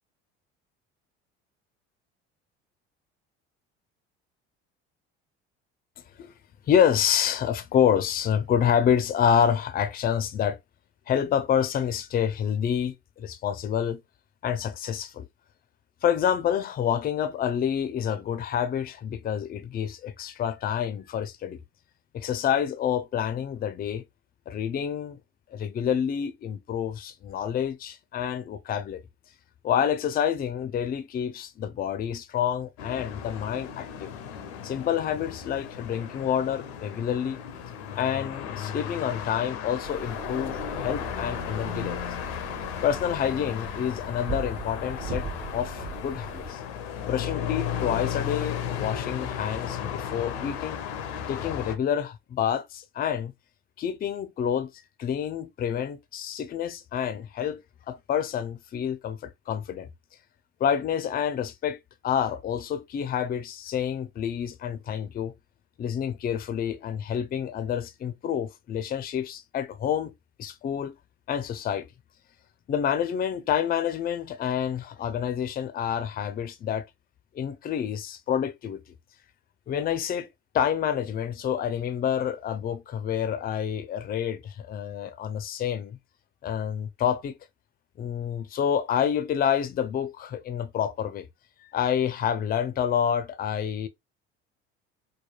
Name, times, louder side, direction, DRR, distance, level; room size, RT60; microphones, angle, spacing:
voice 1, 6.7-10.6 11.1-14.0 14.4-15.3 16.0-21.6 22.1-24.0 24.5-25.2 25.5-29.0 29.6-34.1 34.6-37.4 38.0-42.1 42.8-45.3 45.5-46.6 47.0-50.8 51.3-53.3 53.8-54.7 55.0-57.6 57.9-59.9 60.6-61.8 62.0-65.3 65.8-70.1 70.4-70.9 71.3-71.9 72.7-76.9 77.4-78.8 79.7-80.3 80.5-86.0 86.4-87.4 88.0-91.3 91.6-93.9, left 8 dB, 30° left, 0.4 m, -28 dB
sound 1, 32.8-51.8, left 8 dB, 80° left, 0.6 m, -35 dB
sound 2, 39.8-46.5, right 4 dB, 35° right, 0.9 m, -39 dB
3.1 x 2.2 x 2.3 m
hypercardioid pair, 70°, 32 cm